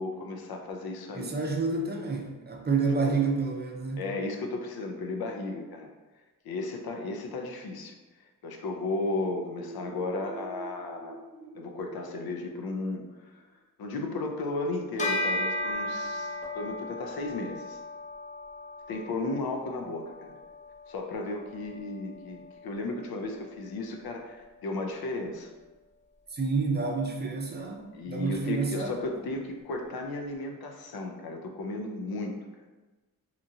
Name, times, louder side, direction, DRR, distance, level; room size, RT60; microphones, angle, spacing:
voice 1, 0.0-1.6 3.0-3.2 4.0-5.9 6.4-7.9 8.4-11.2 11.5-13.4 13.8-17.8 18.9-20.4 20.9-25.5 27.9-32.6, left 2 dB, 85° left, 3 dB, 0.5 m, -34 dB
voice 2, 1.1-4.0 26.3-29.0, right 4 dB, 30° right, 1 dB, 0.5 m, -29 dB
sound 1, 9.4-13.1, right 2 dB, 55° left, 0.9 m, -47 dB
Bell, 15.0-24.7, left 1 dB, 20° left, 0.6 m, -37 dB
2.9 x 2.4 x 2.6 m, 1.2 s
wide cardioid pair, 90°, 36 cm